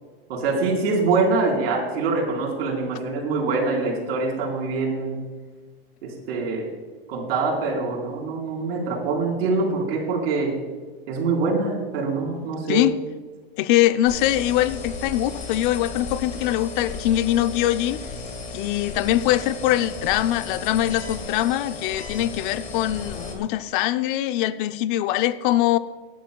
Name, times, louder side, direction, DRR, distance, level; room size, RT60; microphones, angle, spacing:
voice 1, 0.3-5.2 6.0-6.7 7.1-10.5 11.1-12.8, right 3 dB, 75° right, -1 dB, 4.4 m, -24 dB
voice 2, 13.6-18.0 18.5-25.8, left 13 dB, 55° left, 13 dB, 0.6 m, -22 dB
sound 1, 14.1-23.4, left 4 dB, 25° left, 1.8 m, -35 dB
21.0 x 11.0 x 2.3 m, 1.4 s
supercardioid pair, 135°, 30 cm